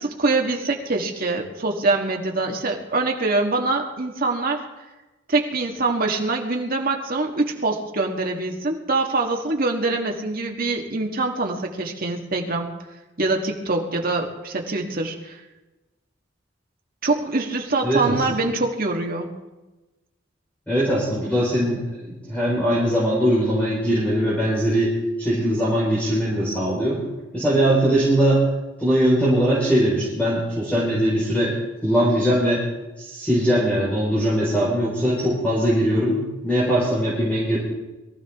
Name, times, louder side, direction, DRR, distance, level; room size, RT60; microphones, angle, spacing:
voice 1, 0.0-4.6 5.3-12.7 13.2-15.4 17.0-19.4, right 3 dB, 50° right, 2 dB, 1.7 m, -24 dB
voice 2, 17.8-18.4 20.7-27.0 27.3-28.5 28.8-31.5 31.8-32.7 33.0-37.6, equal, 10° left, -7 dB, 4.5 m, -21 dB
22.5 x 14.0 x 3.6 m, 1.1 s
head